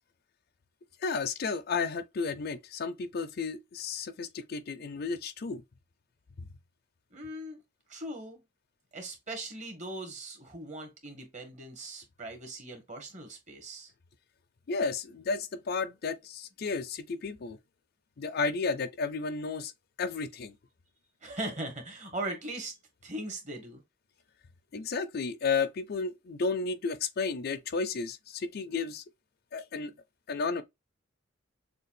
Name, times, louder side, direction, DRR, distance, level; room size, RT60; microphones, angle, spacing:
voice 1, 1.0-5.6 14.7-17.6 18.2-19.7 20.0-20.5 24.7-29.0 29.5-29.9 30.3-30.6, left 4 dB, 50° left, 0.4 m, -32 dB
voice 2, 7.1-7.6 7.9-8.4 8.9-13.9 21.2-22.8 23.0-23.8, right 1 dB, 35° right, 1.5 m, -39 dB
6.5 x 2.3 x 2.5 m
head